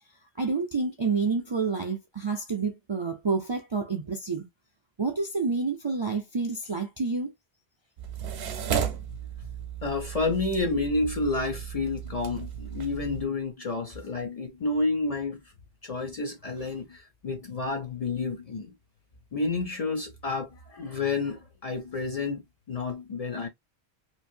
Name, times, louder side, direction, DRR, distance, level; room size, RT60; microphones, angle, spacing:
voice 1, 0.4-4.5 5.0-7.3 8.5-8.6, right 4 dB, 40° right, 0.4 m, -29 dB
sound 1, 8.0-13.3, right 8 dB, 80° right, 0.9 m, -34 dB
voice 2, 9.8-15.4 15.8-18.7 19.3-23.5, left 3 dB, 45° left, 0.5 m, -30 dB
3.0 x 2.5 x 2.6 m
omnidirectional pair, 1.1 m